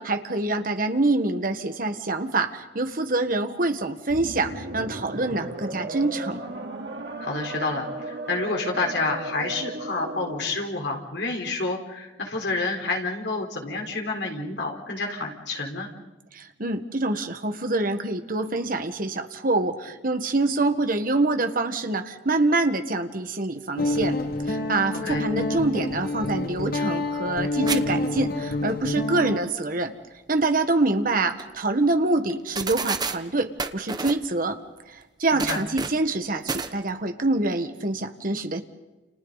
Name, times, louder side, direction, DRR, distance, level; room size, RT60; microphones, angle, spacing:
voice 1, 0.0-6.4 16.3-29.9 30.3-34.6 34.9-38.6, right 2 dB, 50° right, 7 dB, 1.5 m, -26 dB
sound 1, 4.1-10.6, right 2 dB, 80° right, 2.7 m, -35 dB
voice 2, 7.2-15.9 25.0-25.3 35.3-35.6, left 3 dB, 75° left, 1 dB, 4.3 m, -29 dB
Guitar, 23.8-29.4, left 2 dB, 55° left, 1.6 m, -27 dB
sound 2, 27.7-27.8 28.1-28.2 31.0-31.1 31.4-31.5 32.3-32.4 32.6-33.2 33.6-34.2 35.4-36.1 36.5-36.7, right 4 dB, 25° right, 1.0 m, -29 dB
30.0 x 29.5 x 4.1 m, 1.1 s
head